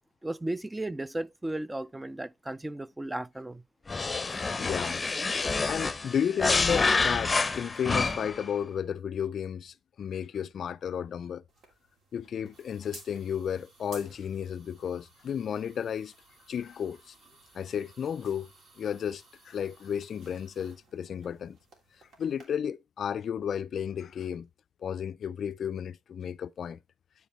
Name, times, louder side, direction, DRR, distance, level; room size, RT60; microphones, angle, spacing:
voice 1, 0.2-3.6, right 1 dB, 10° right, 0.4 m, -35 dB
sound 1, 3.9-8.4, left 4 dB, 25° left, 0.7 m, -28 dB
voice 2, 4.3-5.0 5.3-11.4 12.1-16.1 16.5-17.1 17.5-18.5 18.8-21.6 22.2-24.5 24.8-26.8, left 8 dB, 60° left, 0.4 m, -33 dB
sound 2, 11.5-22.5, right 3 dB, 60° right, 3.0 m, -56 dB
12.0 x 4.7 x 3.1 m
cardioid pair, 90°, 0 cm